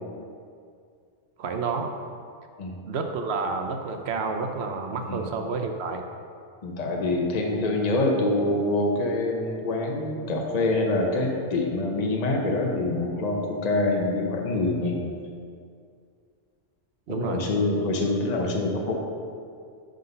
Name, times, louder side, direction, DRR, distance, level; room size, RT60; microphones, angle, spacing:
voice 1, 1.4-1.9 2.9-6.0 17.1-17.4, right 4 dB, 65° right, 4 dB, 0.9 m, -29 dB
voice 2, 6.6-15.1 17.1-18.9, left 2 dB, 40° left, 1 dB, 0.8 m, -25 dB
9.5 x 3.8 x 5.3 m, 2.3 s
omnidirectional pair, 1.2 m